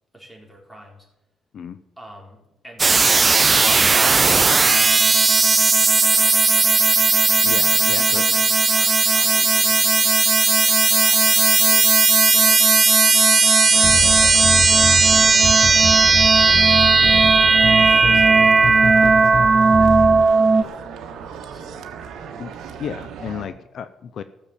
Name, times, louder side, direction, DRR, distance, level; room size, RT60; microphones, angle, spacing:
voice 1, 0.1-1.1 2.0-6.9 7.7-10.1 10.6-11.9 12.3-17.5 17.8-19.6 20.1-20.8 21.0-22.2, right 1 dB, ahead, 0 dB, 4.0 m, -46 dB
sound 1, 2.8-20.6, right 4 dB, 30° right, 0.3 m, -15 dB
voice 2, 7.4-8.2 22.4-22.5 22.8-24.2, left 8 dB, 60° left, 13 dB, 0.6 m, -32 dB
sound 2, 13.7-23.5, right 7 dB, 80° right, 1.4 m, -36 dB
sound 3, 13.8-20.2, left 3 dB, 40° left, 1.1 m, -27 dB
15.0 x 6.9 x 7.3 m, 0.93 s
cardioid pair, 90°, 0 cm